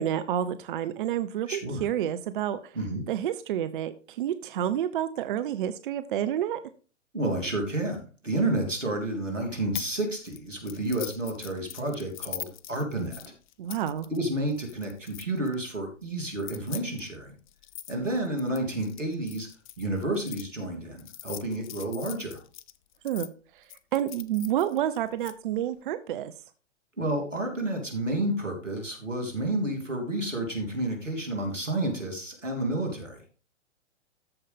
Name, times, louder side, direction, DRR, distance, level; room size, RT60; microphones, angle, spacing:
voice 1, 0.0-2.7 3.1-6.6 13.6-14.1 23.0-23.3 23.5-26.3, right 10 dB, 45° right, 12 dB, 0.6 m, -29 dB
voice 2, 1.5-1.9 2.7-3.0 7.1-13.3 14.1-17.4 17.9-19.5 19.8-22.4 27.0-33.2, right 1 dB, 90° right, 2 dB, 3.2 m, -30 dB
sound 1, 9.7-9.9 10.2-15.5 16.3-20.4 21.0-23.3 23.7-25.3, left 13 dB, 40° left, 0.6 m, -42 dB
13.5 x 5.4 x 3.5 m, 0.38 s
figure-of-eight pair, 115°, 36 cm